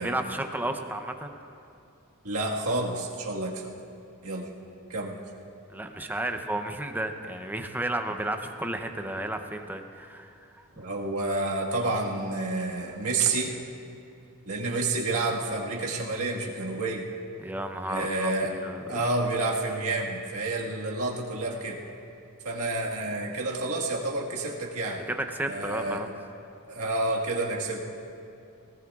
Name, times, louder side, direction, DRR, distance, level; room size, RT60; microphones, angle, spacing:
voice 1, 0.0-1.3 5.7-10.3 17.4-19.0 25.1-26.1, right 1 dB, 10° right, 5 dB, 0.6 m, -32 dB
voice 2, 2.2-3.7 4.2-4.5 4.9-5.2 10.8-13.5 14.5-17.0 17.9-18.5 18.9-21.8 22.4-25.0 25.5-26.0 26.7-27.8, right 2 dB, 75° right, -2 dB, 1.6 m, -29 dB
19.0 x 18.5 x 2.4 m, 2.6 s
head